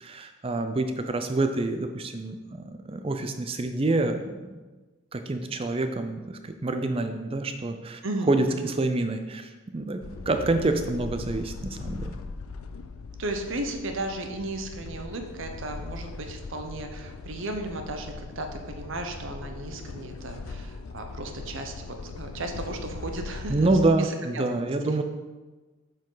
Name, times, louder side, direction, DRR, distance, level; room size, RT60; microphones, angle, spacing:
voice 1, 0.0-4.4 5.1-8.0 8.3-10.0 10.3-12.1 23.5-25.0, right 2 dB, 25° right, 7 dB, 0.4 m, -27 dB
voice 2, 8.0-8.8 13.2-23.7 24.0-25.0, right 2 dB, 60° right, 5 dB, 0.7 m, -35 dB
sound 1, 10.0-23.9, left 4 dB, 80° left, 0.4 m, -40 dB
7.5 x 4.6 x 4.0 m, 1.2 s
head